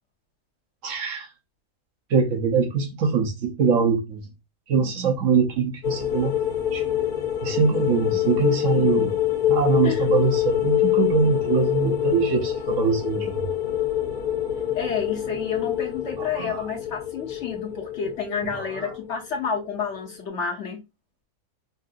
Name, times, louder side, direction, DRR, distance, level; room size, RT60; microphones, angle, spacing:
voice 1, 0.8-1.3 2.1-4.3 4.7-6.4 6.7-6.8 7.4-9.2 9.5-13.5 16.2-16.7 18.4-18.9, right 5 dB, 60° right, 1.0 m, -23 dB
sound 1, 5.8-19.3 19.5-19.8, left 12 dB, 80° left, 1.5 m, -26 dB
voice 2, 14.7-20.8, left 6 dB, 55° left, 1.0 m, -30 dB
5.5 x 2.5 x 2.4 m
omnidirectional pair, 1.6 m